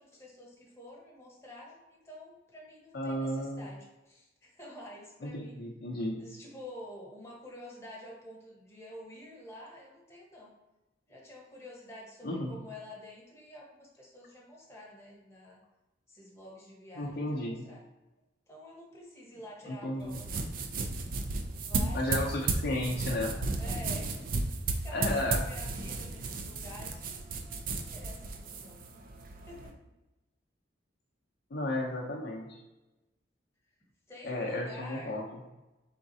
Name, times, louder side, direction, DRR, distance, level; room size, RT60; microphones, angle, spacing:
voice 1, 0.0-5.6 6.2-10.5 11.1-15.6 16.1-17.8 18.5-20.4 21.6-23.3 23.6-28.8 29.2-29.7 34.1-35.2, left 1 dB, 15° left, -3 dB, 1.1 m, -49 dB
voice 2, 2.9-3.7 5.2-6.3 12.2-12.5 17.0-17.6 19.7-20.2 21.9-23.3 24.9-25.4 31.5-32.6 34.2-35.2, left 1 dB, 55° left, -1 dB, 0.6 m, -33 dB
sound 1, 20.0-29.7, right 3 dB, 50° right, 0.4 m, -34 dB
3.9 x 3.6 x 2.7 m, 1.0 s
head